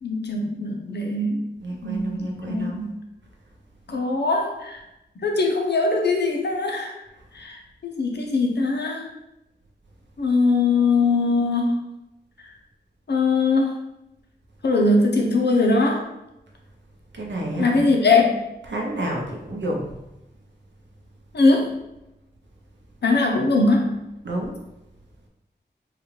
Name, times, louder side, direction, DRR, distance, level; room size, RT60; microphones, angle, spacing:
voice 1, 0.0-1.4 1.8-2.9 3.9-4.8 5.2-7.0 7.3-9.1 10.2-11.8 13.1-13.7 14.6-16.0 17.6-18.4 21.3-21.7 23.0-24.0, left 3 dB, 65° left, 1 dB, 0.6 m, -21 dB
voice 2, 1.6-2.8 17.1-17.8 18.7-19.9 24.2-24.5, right 1 dB, 85° right, 0 dB, 0.7 m, -29 dB
3.9 x 2.4 x 3.1 m, 0.90 s
wide cardioid pair, 80°, 18 cm